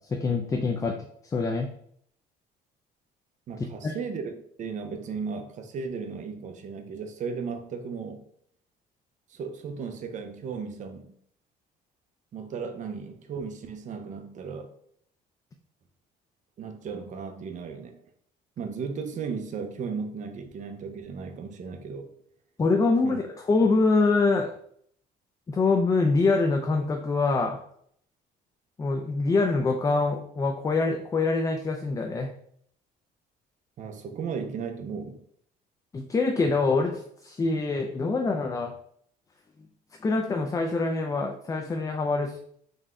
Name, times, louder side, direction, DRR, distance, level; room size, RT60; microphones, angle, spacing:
voice 1, 0.1-1.0 1.2-1.7 3.8-3.9 22.6-23.2 23.5-24.5 25.5-27.6 28.8-32.3 35.9-38.7 40.0-42.4, left 3 dB, 20° left, 3 dB, 0.3 m, -25 dB
voice 2, 3.5-8.2 9.3-11.2 12.3-14.7 16.6-18.0 18.6-22.1 23.0-23.2 33.8-35.2, right 5 dB, 45° right, 7 dB, 0.6 m, -35 dB
3.9 x 2.2 x 3.6 m, 0.66 s
cardioid pair, 110°, 17 cm